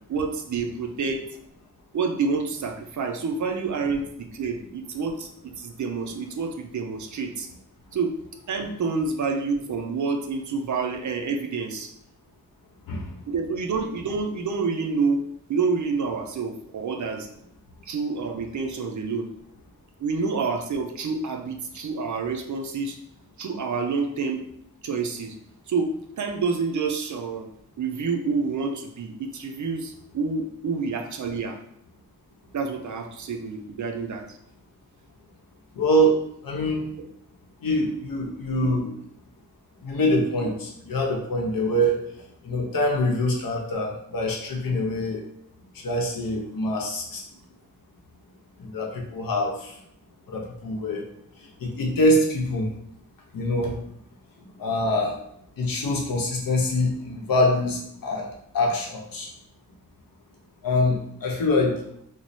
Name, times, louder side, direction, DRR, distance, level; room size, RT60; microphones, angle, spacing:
voice 1, 0.1-1.2 1.9-7.5 7.9-8.1 8.5-11.9 13.3-15.2 15.5-17.3 17.9-19.3 20.0-23.0 23.4-24.4 24.8-25.3 25.7-27.5 27.8-31.6 32.5-34.2 38.6-38.8, right 4 dB, 60° right, 4 dB, 0.5 m, -28 dB
voice 2, 35.7-36.1 36.4-36.9 37.6-38.9 39.8-42.0 42.4-45.2 45.8-47.2 48.6-49.7 50.3-51.0 51.6-52.7 53.3-53.7 54.6-55.1 55.6-58.3 58.5-59.3 60.6-61.8, left 1 dB, 85° left, 0 dB, 0.8 m, -24 dB
3.1 x 2.0 x 4.0 m, 0.73 s
wide cardioid pair, 165°, 33 cm